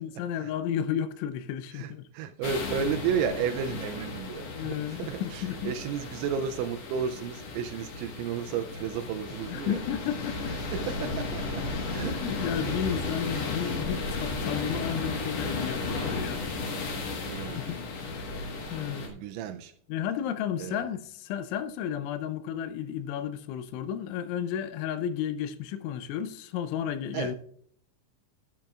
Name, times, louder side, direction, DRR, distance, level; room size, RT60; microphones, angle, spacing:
voice 1, 0.0-2.1 4.5-5.7 9.5-10.5 12.0-16.5 17.4-19.1 19.9-27.4, left 9 dB, 85° left, 3.0 m, -33 dB
voice 2, 1.7-9.8 10.9-11.6 11.9-12.2 12.6-13.0 17.2-17.6 18.9-19.7 20.6-20.9 27.1-27.3, right 7 dB, 85° right, 3.0 m, -33 dB
sound 1, 2.4-19.1, left 3 dB, 70° left, 1.5 m, -34 dB
13.0 x 10.5 x 2.4 m
omnidirectional pair, 5.3 m